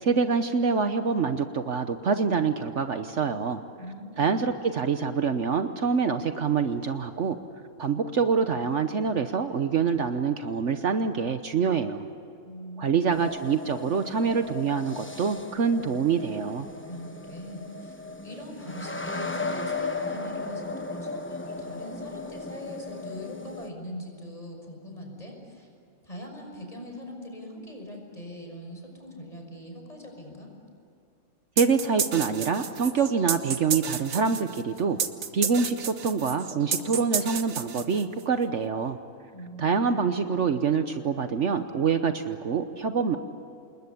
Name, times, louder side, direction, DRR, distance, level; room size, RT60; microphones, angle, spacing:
voice 1, 0.0-3.6 4.2-7.4 7.8-12.1 12.8-16.7 31.6-35.0 35.3-39.0 39.6-43.2, right 5 dB, 60° right, 8 dB, 1.2 m, -26 dB
voice 2, 3.8-4.6 12.4-13.2 16.9-25.7 26.0-30.5 39.3-40.1, equal, 25° left, 1 dB, 6.1 m, -42 dB
sound 1, 13.1-23.7, left 3 dB, 10° left, 1.0 m, -36 dB
sound 2, 31.6-38.3, right 7 dB, 75° right, 1.6 m, -31 dB
27.5 x 21.0 x 8.6 m, 2.7 s
omnidirectional pair, 1.5 m